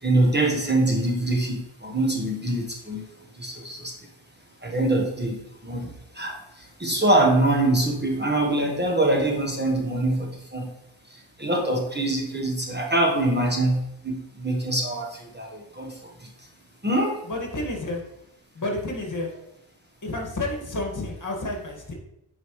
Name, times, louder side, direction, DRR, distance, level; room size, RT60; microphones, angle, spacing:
voice 1, 0.0-3.1 3.3-4.0 4.6-10.7 11.1-16.5 16.8-17.2, right 1 dB, 20° right, 1 dB, 1.2 m, -24 dB
voice 2, 17.2-18.0 18.6-19.3 20.0-21.9, left 2 dB, 40° left, 1 dB, 1.9 m, -30 dB
8.9 x 4.8 x 3.1 m, 0.85 s
cardioid pair, 75°, 48 cm